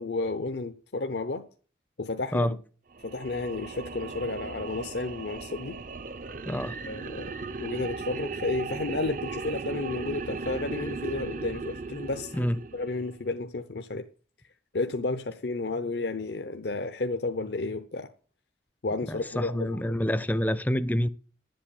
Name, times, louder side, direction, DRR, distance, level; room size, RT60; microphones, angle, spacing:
voice 1, 0.0-1.5 2.0-2.6 3.0-5.8 6.9-12.5 12.7-14.1 14.7-18.1 18.8-19.9, left 3 dB, 70° left, 0.7 m, -32 dB
sound 1, 2.9-13.2, right 3 dB, 45° right, 0.5 m, -37 dB
voice 2, 19.1-21.1, equal, 10° left, 0.5 m, -27 dB
10.5 x 7.8 x 8.7 m
head